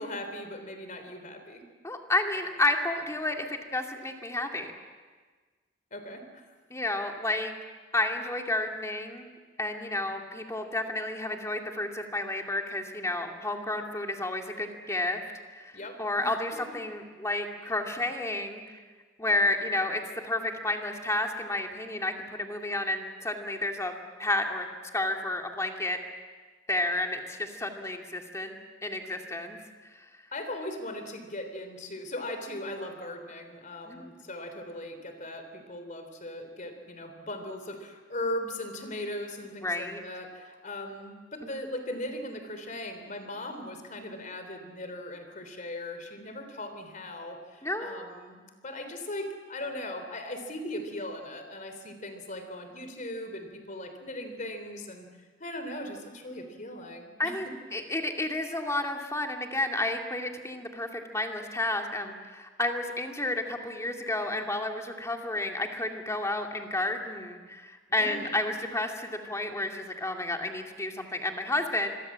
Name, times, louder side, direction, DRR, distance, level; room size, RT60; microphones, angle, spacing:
voice 1, 0.0-1.6 5.9-6.4 15.7-16.3 30.3-55.1 55.4-57.4 67.9-68.4, left 1 dB, 40° left, 7 dB, 3.5 m, -39 dB
voice 2, 1.8-4.7 6.7-7.5 7.9-9.3 9.6-15.2 15.5-18.6 19.2-23.9 24.2-24.7 24.9-26.0 26.7-28.6 28.8-29.6 33.9-34.1 39.6-40.0 41.4-41.5 47.6-48.0 57.2-71.9, left 2 dB, 15° left, 3 dB, 2.3 m, -31 dB
26.5 x 22.5 x 7.5 m, 1.4 s
head